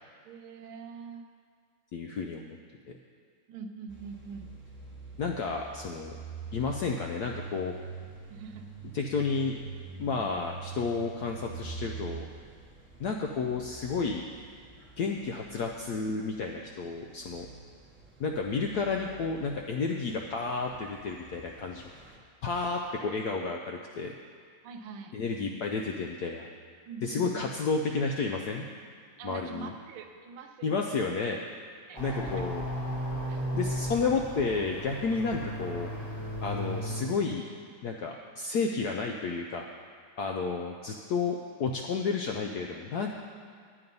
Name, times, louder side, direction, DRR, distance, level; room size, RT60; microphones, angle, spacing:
voice 1, 0.2-1.2 3.5-4.5 8.3-8.7 9.1-9.3 20.1-20.2 24.6-25.1 26.8-27.5 29.2-30.9 31.9-32.5 33.3-33.5, right 5 dB, 80° right, 6 dB, 1.6 m, -44 dB
voice 2, 1.9-2.6 5.2-6.2 6.5-7.7 8.9-9.5 10.0-12.3 13.0-14.2 15.0-17.5 18.2-21.9 22.4-24.1 25.1-26.5 27.0-28.7 29.2-29.7 30.6-31.4 32.0-32.6 33.5-35.9 36.4-37.5 37.8-39.7 40.2-43.2, left 4 dB, 75° left, 2 dB, 0.9 m, -31 dB
sound 1, 3.9-22.2, right 4 dB, 10° right, 0.8 m, -46 dB
sound 2, 31.9-37.0, equal, 25° left, 0.6 m, -35 dB
9.4 x 8.7 x 5.3 m, 2.1 s
omnidirectional pair, 2.3 m